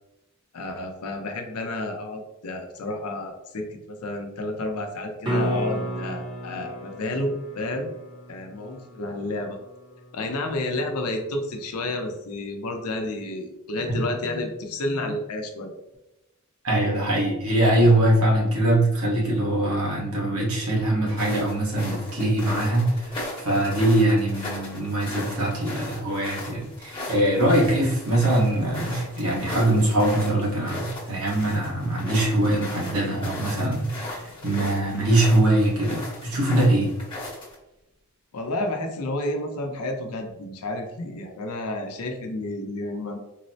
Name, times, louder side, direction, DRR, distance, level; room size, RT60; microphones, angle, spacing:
voice 1, 0.5-7.9 8.3-9.6 10.1-15.7 38.3-43.2, left 1 dB, 80° left, 4 dB, 0.6 m, -30 dB
sound 1, 5.2-11.3 15.9-16.0, equal, 20° right, 0.5 m, -33 dB
voice 2, 16.6-36.9, right 1 dB, 75° right, -3 dB, 1.1 m, -22 dB
sound 2, 21.1-37.5, left 1 dB, 20° left, 0.9 m, -37 dB
3.9 x 2.0 x 2.6 m, 0.93 s
head